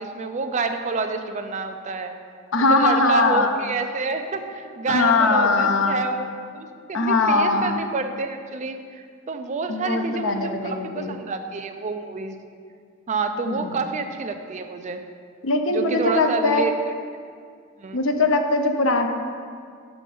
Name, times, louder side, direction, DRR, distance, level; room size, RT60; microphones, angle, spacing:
voice 1, 0.0-2.1 2.7-12.4 13.1-15.0 15.7-16.7 17.8-18.1, right 4 dB, 35° right, 7 dB, 0.4 m, -28 dB
voice 2, 2.5-3.5 4.9-6.0 6.9-7.8 9.7-11.2 13.5-13.8 15.4-16.7 17.9-19.1, left 3 dB, 65° left, 5 dB, 0.6 m, -21 dB
5.8 x 5.1 x 5.4 m, 2.2 s
head